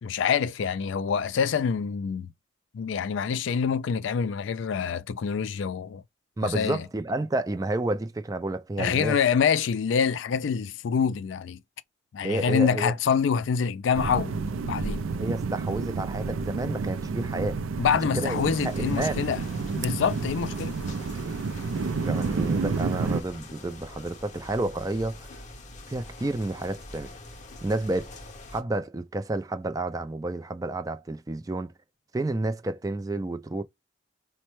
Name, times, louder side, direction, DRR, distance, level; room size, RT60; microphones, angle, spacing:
voice 1, 0.0-2.3 2.7-6.0 6.4-6.8 8.8-11.6 12.1-14.4 14.6-15.1 17.8-19.4 19.8-20.8, left 6 dB, 70° left, 0.3 m, -26 dB
voice 2, 6.4-9.2 12.2-12.9 15.2-17.6 18.1-19.3 22.0-25.3 25.9-27.1 27.6-28.1 28.5-31.7 32.1-33.6, right 2 dB, 20° right, 0.3 m, -30 dB
sound 1, 13.9-23.2, right 4 dB, 90° right, 0.4 m, -30 dB
sound 2, 18.2-28.6, left 2 dB, 35° left, 0.7 m, -44 dB
4.2 x 2.1 x 3.0 m
head